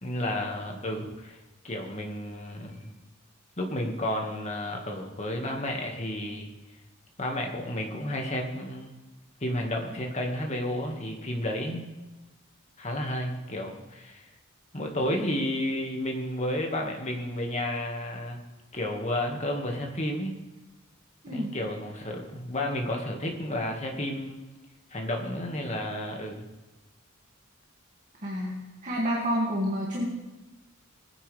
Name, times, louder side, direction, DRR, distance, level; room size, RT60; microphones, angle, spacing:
voice 1, 0.0-1.4 1.6-2.9 3.6-6.5 7.2-9.0 9.4-11.9 12.8-14.2 14.7-18.4 18.7-20.4 21.3-24.4 24.9-26.4, left 1 dB, 35° left, 1 dB, 1.8 m, -32 dB
voice 2, 28.2-28.6 28.8-30.0, equal, 40° right, -5 dB, 2.3 m, -28 dB
21.0 x 9.8 x 3.4 m, 1.1 s
head